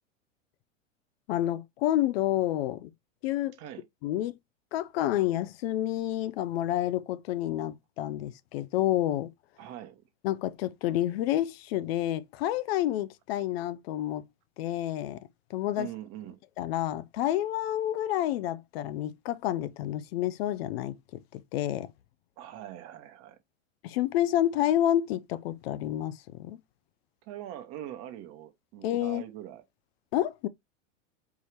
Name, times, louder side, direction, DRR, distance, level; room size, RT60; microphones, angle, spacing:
voice 1, 1.3-2.9 3.2-3.6 4.0-4.3 4.7-9.3 10.2-14.2 14.6-15.9 16.6-21.0 21.3-21.9 23.8-26.6 28.8-29.2 30.1-30.5, left 13 dB, 55° left, 0.5 m, -29 dB
voice 2, 9.6-10.0 15.8-16.4 22.4-23.4 27.2-29.6, right 12 dB, 40° right, 1.1 m, -42 dB
4.6 x 2.7 x 3.3 m
hypercardioid pair, 105°, 37 cm